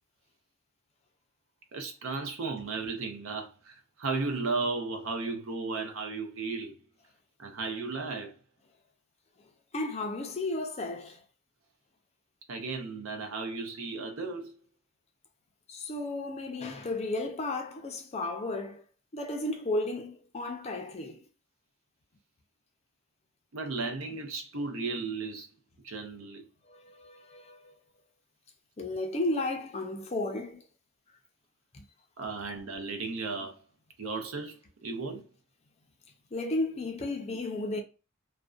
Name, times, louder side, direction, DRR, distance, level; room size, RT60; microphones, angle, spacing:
voice 1, 1.7-6.8 7.4-8.3 12.5-14.5 23.5-25.5 25.8-26.4 32.2-33.6 34.0-35.3, right 3 dB, 70° right, 0.6 m, -35 dB
voice 2, 9.7-11.2 15.7-18.8 19.1-21.2 26.6-27.8 28.8-30.6 31.7-31.8 36.3-37.8, left 2 dB, 30° left, 0.4 m, -33 dB
2.5 x 2.1 x 2.3 m
head